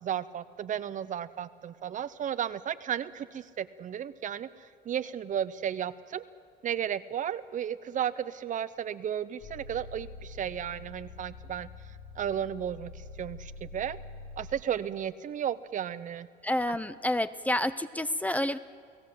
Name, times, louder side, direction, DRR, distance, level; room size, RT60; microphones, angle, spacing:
voice 1, 0.0-6.2 6.6-11.7 12.2-14.0 14.4-16.3, right 9 dB, 50° right, 15 dB, 0.9 m, -34 dB
sound 1, 9.4-14.6, left 3 dB, 85° left, 5.7 m, -46 dB
voice 2, 16.4-18.6, left 1 dB, 10° left, 14 dB, 0.7 m, -29 dB
29.5 x 17.0 x 7.8 m, 2.1 s
cardioid pair, 110°, 17 cm